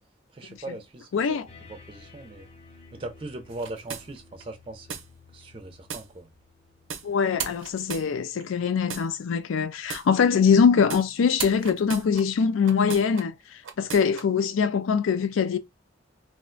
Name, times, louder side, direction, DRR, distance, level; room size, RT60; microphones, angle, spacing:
voice 1, 0.3-1.4 1.7-2.5 2.9-5.0 5.3-6.3, right 2 dB, 25° right, 0.4 m, -39 dB
voice 2, 1.1-1.5 7.0-15.6, left 6 dB, 80° left, 0.4 m, -23 dB
sound 1, 1.5-7.1, left 4 dB, 30° left, 0.6 m, -53 dB
sound 2, 3.5-4.4 4.9-5.0 5.9-6.0 6.9-7.0 7.4-8.4 8.9-9.0 9.9-10.0 10.9-11.0 11.4-13.2 13.6-14.2, right 7 dB, 80° right, 0.6 m, -36 dB
2.4 x 2.2 x 3.7 m
head